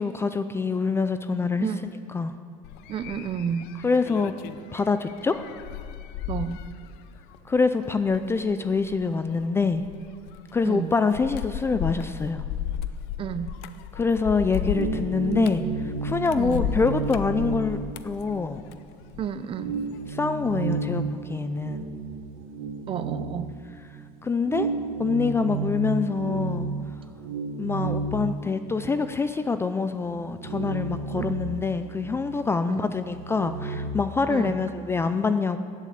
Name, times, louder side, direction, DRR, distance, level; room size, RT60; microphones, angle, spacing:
voice 1, 0.0-1.7 2.1-2.3 3.8-4.3 4.7-5.4 7.5-9.8 10.5-12.4 13.9-15.6 16.0-17.8 18.0-18.6 20.1-21.8 24.2-24.7 25.0-26.7 27.6-35.6, left 4 dB, 15° left, 10 dB, 0.4 m, -25 dB
sound 1, 2.6-19.4 19.7-20.1, left 10 dB, 70° left, 0.7 m, -35 dB
voice 2, 2.9-3.7 6.3-6.6 10.6-10.9 13.2-13.6 16.4-16.6 19.2-19.7 22.9-23.5 31.1-31.2 32.7-32.9 34.3-34.6, right 7 dB, 30° right, 12 dB, 0.6 m, -31 dB
sound 2, 14.3-18.6 19.0-19.1 19.5-23.9 24.4-29.1 29.5-29.6 30.0-32.4 32.7-33.9, right 4 dB, 70° right, 2.2 m, -32 dB
15.5 x 8.3 x 8.6 m, 2.3 s
cardioid pair, 150°, 17 cm